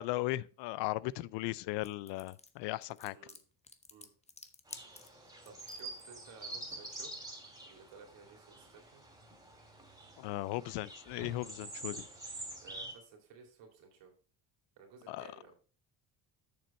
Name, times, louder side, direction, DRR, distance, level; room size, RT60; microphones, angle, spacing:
voice 1, 0.0-3.2 10.2-12.0 15.1-15.3, left 17 dB, 80° left, 0.5 m, -37 dB
sound 1, 1.8-6.0, left 4 dB, 15° left, 0.8 m, -52 dB
sound 2, 4.7-12.9, right 2 dB, 10° right, 2.7 m, -47 dB
voice 2, 5.4-7.1 7.6-9.0 12.6-14.1 14.8-15.6, right 5 dB, 80° right, 2.6 m, -56 dB
7.1 x 6.4 x 4.2 m
cardioid pair, 105°, 42 cm